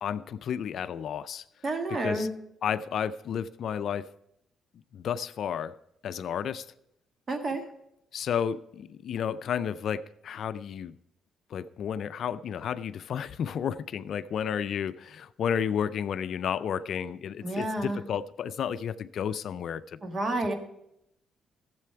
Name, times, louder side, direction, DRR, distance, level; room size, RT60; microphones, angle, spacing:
voice 1, 0.0-1.4 1.9-2.3 2.6-4.1 4.9-5.8 6.0-6.7 8.1-10.9 11.5-20.0, left 8 dB, 65° left, 0.4 m, -32 dB
voice 2, 1.6-2.3 7.3-7.6 17.4-18.0 20.0-20.5, right 2 dB, 35° right, 1.7 m, -29 dB
14.0 x 7.6 x 4.6 m
cardioid pair, 90°, 0 cm